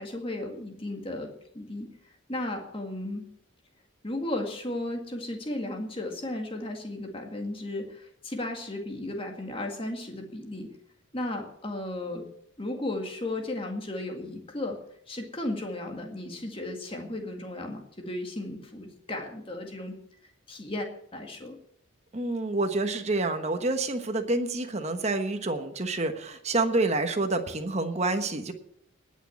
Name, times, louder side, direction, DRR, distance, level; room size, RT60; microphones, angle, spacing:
voice 1, 0.0-1.9 2.3-3.3 4.0-10.7 11.1-12.3 12.6-14.8 15.1-19.9 20.5-21.6, left 1 dB, 25° left, 3 dB, 2.0 m, -35 dB
voice 2, 22.1-28.5, right 2 dB, 30° right, 6 dB, 1.2 m, -28 dB
19.0 x 6.4 x 7.2 m, 0.72 s
head